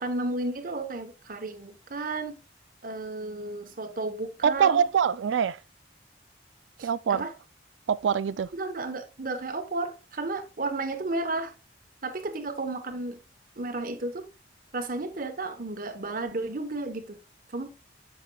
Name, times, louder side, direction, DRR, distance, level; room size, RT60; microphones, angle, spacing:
voice 1, 0.0-2.4 2.8-4.8 6.8-7.3 8.5-11.5 12.0-13.2 13.6-14.3 14.7-17.2 17.5-17.7, right 2 dB, 45° right, 1.1 m, -33 dB
voice 2, 4.4-5.6 6.8-7.2 7.9-8.5, right 7 dB, 80° right, 0.3 m, -24 dB
10.0 x 7.6 x 2.3 m
head